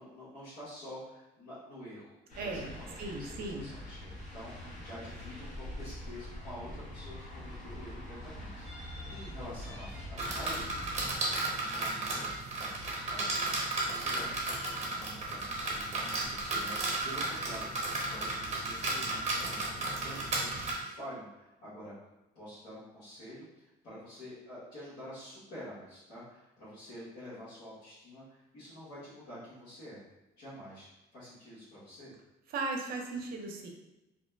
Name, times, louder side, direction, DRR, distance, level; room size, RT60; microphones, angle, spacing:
voice 1, 0.0-10.7 11.6-12.5 12.8-21.9 22.3-30.0 30.4-30.9 31.1-32.1, equal, 75° left, -12 dB, 1.2 m, -48 dB
sound 1, 2.3-11.2, left 1 dB, 50° left, 0.8 m, -44 dB
voice 2, 2.4-3.7 32.5-33.7, right 3 dB, 65° right, 2 dB, 0.6 m, -37 dB
sound 2, 8.6-10.6 11.0-11.1 11.7-12.5 12.9-14.9, right 1 dB, ahead, 0.7 m, -51 dB
sound 3, 10.2-20.7, right 2 dB, 40° right, 0.8 m, -34 dB
2.6 x 2.1 x 3.3 m, 0.96 s
cardioid pair, 110°, 17 cm